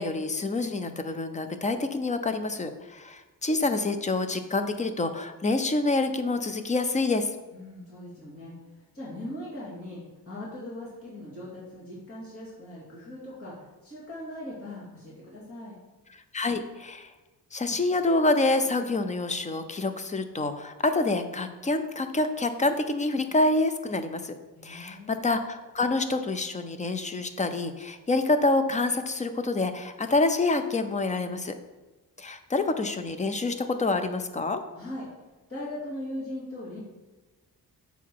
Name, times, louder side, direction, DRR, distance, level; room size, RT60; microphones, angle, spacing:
voice 1, 0.0-7.3 16.3-17.1 17.5-24.4 24.6-31.5 32.2-34.6, left 2 dB, 20° left, 9 dB, 0.5 m, -27 dB
voice 2, 7.5-8.5 8.9-15.8 24.5-25.1 34.8-35.1 35.5-36.8, left 1 dB, 35° left, -7 dB, 2.7 m, -39 dB
7.0 x 5.8 x 4.6 m, 1.2 s
wide cardioid pair, 165°, 38 cm